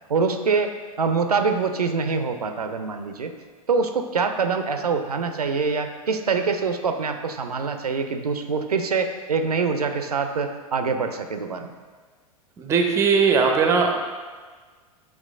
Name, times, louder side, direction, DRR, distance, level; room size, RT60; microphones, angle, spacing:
voice 1, 0.1-3.3 3.7-11.7, right 5 dB, 80° right, 6 dB, 0.4 m, -25 dB
voice 2, 12.6-14.0, right 5 dB, 15° right, 3 dB, 0.4 m, -19 dB
7.5 x 2.9 x 2.4 m, 1.5 s
figure-of-eight pair, 95°, 19 cm